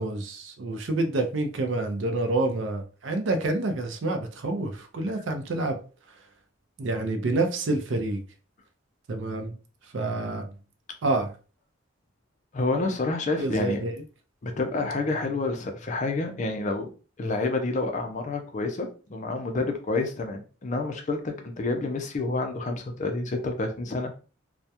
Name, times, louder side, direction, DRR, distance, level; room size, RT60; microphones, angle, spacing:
voice 1, 0.0-5.8 6.8-8.2 9.1-9.5 9.9-10.5 11.0-11.3 13.4-13.9, right 2 dB, 70° right, 0.5 m, -28 dB
voice 2, 12.5-13.8 14.4-16.9 17.2-24.2, left 3 dB, 40° left, 0.4 m, -29 dB
2.2 x 2.1 x 2.7 m
head